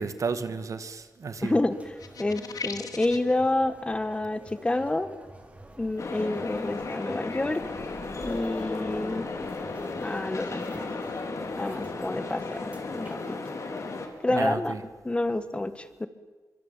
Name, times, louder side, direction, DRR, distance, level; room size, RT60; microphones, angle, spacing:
voice 1, 0.0-1.6 14.3-14.8, right 5 dB, 60° right, 11 dB, 2.0 m, -32 dB
voice 2, 1.4-1.7 2.2-5.1 5.8-7.6 8.2-9.5 10.0-10.9 11.6-13.4 14.2-14.7 15.0-16.1, left 2 dB, 20° left, 12 dB, 1.5 m, -28 dB
sound 1, 1.7-13.2, right 2 dB, 20° right, 3.9 m, -49 dB
sound 2, 2.0-3.3, left 5 dB, 80° left, 2.4 m, -38 dB
sound 3, 6.0-14.1, left 3 dB, 55° left, 4.1 m, -35 dB
26.5 x 24.5 x 9.0 m, 1.3 s
wide cardioid pair, 155°, 6 cm